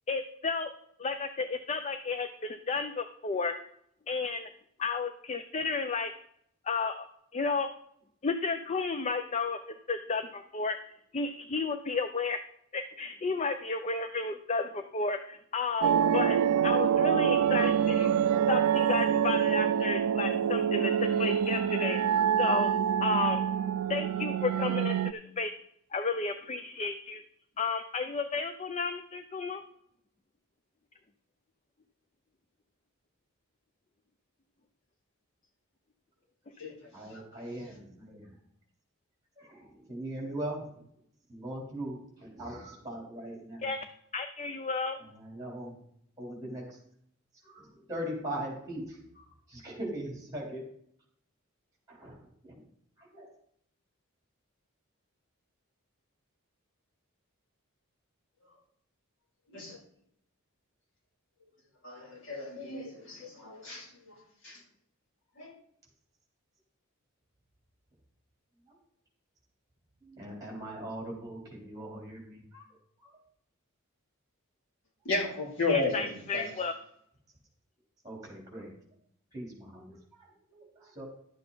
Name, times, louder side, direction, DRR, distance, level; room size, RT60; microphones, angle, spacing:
voice 1, 0.1-0.7 1.0-3.5 4.1-4.5 4.8-6.1 6.7-7.0 7.3-7.7 8.2-10.8 11.1-12.4 12.7-16.4 16.6-18.1 18.5-22.0 22.4-22.7 23.0-23.4 23.9-25.5 25.9-27.2 27.6-29.6 43.6-43.8 44.1-45.0 75.7-76.7, left 4 dB, 30° left, 8 dB, 0.5 m, -32 dB
sound 1, 15.8-25.1, right 8 dB, 85° right, 0.3 m, -26 dB
voice 2, 36.9-38.3 39.4-40.7 41.3-43.7 45.1-45.7 46.2-46.8 47.4-50.7 51.9-52.2 52.4-52.6 53.1-53.3 70.0-72.6 73.0-73.1 78.0-78.7 79.3-80.0 80.5-81.1, right 1 dB, 15° right, -2 dB, 3.4 m, -40 dB
voice 3, 61.8-63.9 64.4-64.6 65.4-65.5 75.0-76.5, left 3 dB, 60° left, -2 dB, 3.0 m, -33 dB
12.0 x 7.7 x 3.9 m, 0.69 s
head